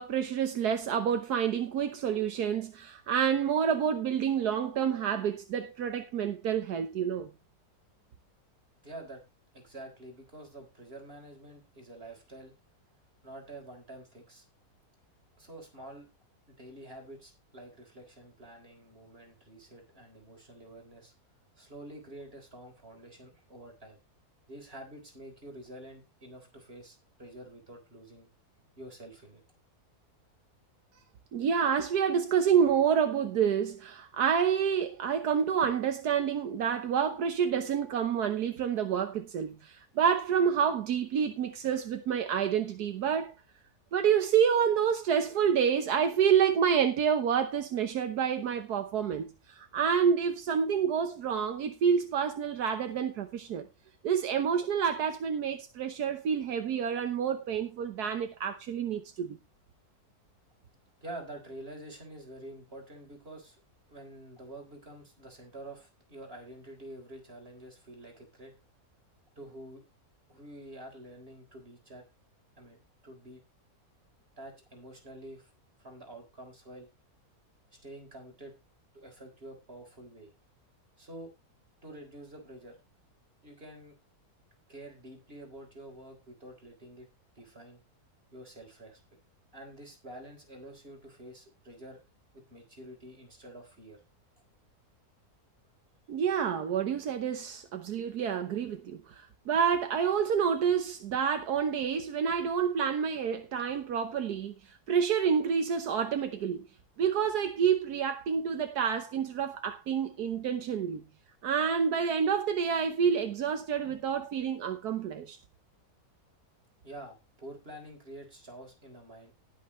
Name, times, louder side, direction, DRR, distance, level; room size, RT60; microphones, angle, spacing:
voice 1, 0.0-7.3 31.3-43.3 43.9-53.7 54.0-59.4 96.1-104.5 104.9-106.7 107.0-111.0 111.4-115.4, right 7 dB, 80° right, 1.5 m, -28 dB
voice 2, 8.8-9.2 9.5-12.5 13.2-14.5 15.4-16.1 16.5-21.1 21.6-24.0 24.5-28.3 28.8-29.4 61.0-63.6 63.9-68.5 69.4-69.8 70.3-72.0 72.6-73.4 74.4-75.5 75.8-76.9 77.8-78.5 78.9-80.3 81.0-81.3 81.8-82.8 83.4-84.0 84.7-87.1 87.4-87.8 88.3-89.0 89.5-92.0 92.3-94.0 116.8-119.3, right 1 dB, 40° right, 4.2 m, -48 dB
19.0 x 6.4 x 3.1 m
omnidirectional pair, 1.7 m